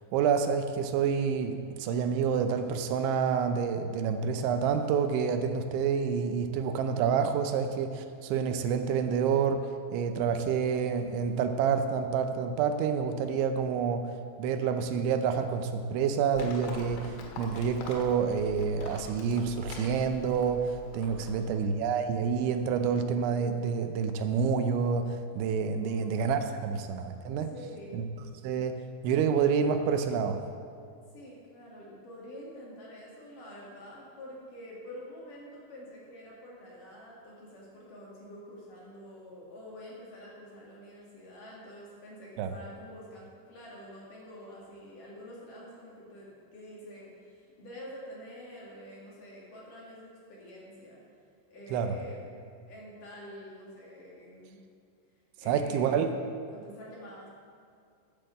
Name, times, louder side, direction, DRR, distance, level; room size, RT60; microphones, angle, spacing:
voice 1, 0.1-14.1 14.4-27.5 27.9-28.1 28.4-28.8 29.0-30.4 42.4-42.5 51.7-52.0 55.5-56.1, right 6 dB, 80° right, 7 dB, 2.8 m, -28 dB
Livestock farm animals working animals, 16.3-21.5, left 3 dB, 70° left, 3.5 m, -44 dB
voice 2, 21.1-21.7 25.8-26.8 27.5-28.0 31.1-51.0 51.5-52.4 52.7-54.6 55.4-56.2 56.5-57.3, equal, 50° left, -5 dB, 3.0 m, -47 dB
11.0 x 8.5 x 7.7 m, 2.3 s
omnidirectional pair, 5.9 m